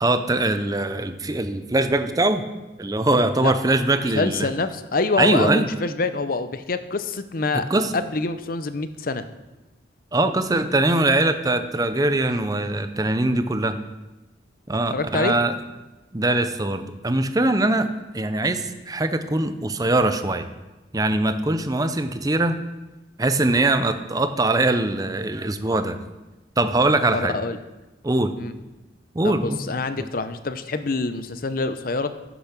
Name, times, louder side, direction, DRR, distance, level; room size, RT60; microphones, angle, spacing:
voice 1, 0.0-2.4 2.8-4.5 5.2-5.7 7.5-7.9 10.1-13.8 14.7-15.5 16.1-17.9 18.1-20.5 20.9-22.6 23.2-26.0 26.6-27.4 28.0-28.3 29.1-29.6 30.0-30.1, right 2 dB, 20° right, 10 dB, 0.6 m, -22 dB
voice 2, 4.1-7.7 7.9-9.2 14.9-15.4 27.1-27.6 28.4-28.5 29.2-32.1, left 3 dB, 50° left, 11 dB, 0.6 m, -25 dB
10.0 x 7.0 x 5.9 m, 1.1 s
head